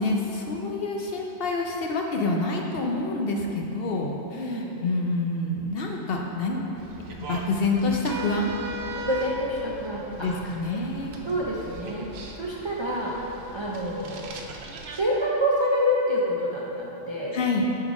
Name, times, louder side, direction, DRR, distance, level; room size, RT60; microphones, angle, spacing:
voice 1, 0.0-6.6 7.2-8.5 10.2-11.2 17.3-17.6, left 2 dB, 60° left, 1 dB, 0.7 m, -27 dB
voice 2, 4.4-4.7 9.0-10.3 11.3-14.3 15.0-17.4, equal, 35° right, -5 dB, 0.4 m, -27 dB
sound 1, 6.8-15.0, right 1 dB, 65° right, 0.8 m, -39 dB
7.0 x 3.9 x 4.9 m, 3.0 s
omnidirectional pair, 1.2 m